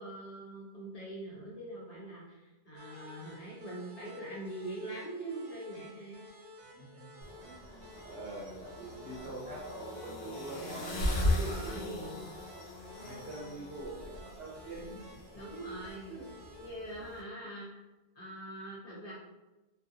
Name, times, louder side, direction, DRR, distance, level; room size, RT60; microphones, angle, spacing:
voice 1, 0.0-6.2 11.1-12.2 15.3-16.1 16.6-17.8 18.2-19.1, right 1 dB, 45° left, -5 dB, 0.7 m, -43 dB
sound 1, 2.7-16.7, equal, 50° right, 0.4 m, -54 dB
voice 2, 6.7-10.9 11.6-12.1 12.9-15.2 16.1-16.3 17.0-17.1, right 2 dB, 75° right, -4 dB, 1.0 m, -45 dB
sound 2, 7.2-17.2, left 1 dB, 75° left, 0.9 m, -38 dB
2.5 x 2.1 x 2.6 m, 1.1 s
omnidirectional pair, 1.0 m